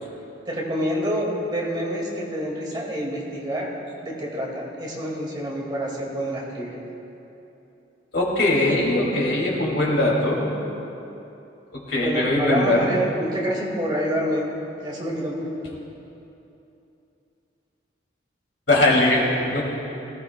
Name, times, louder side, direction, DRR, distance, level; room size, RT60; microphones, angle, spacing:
voice 1, 0.5-3.7 4.0-6.8 12.0-14.5 14.8-15.8, equal, 25° right, -3 dB, 1.9 m, -27 dB
voice 2, 8.1-10.5 11.7-12.9 18.7-19.6, left 1 dB, 70° left, -3 dB, 2.4 m, -21 dB
18.0 x 16.0 x 2.2 m, 2.9 s
head